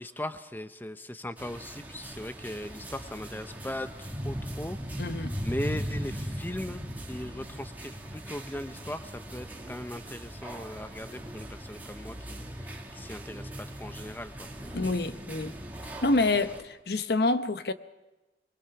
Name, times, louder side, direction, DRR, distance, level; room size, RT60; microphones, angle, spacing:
voice 1, 0.0-5.1 5.4-6.8 7.1-14.5, left 1 dB, 10° left, 0.7 m, -39 dB
sound 1, 1.4-16.6, equal, 10° right, 1.8 m, -39 dB
voice 2, 5.0-5.4 14.7-15.6 16.0-17.7, left 2 dB, 65° left, 0.8 m, -27 dB
23.0 x 21.5 x 5.9 m
head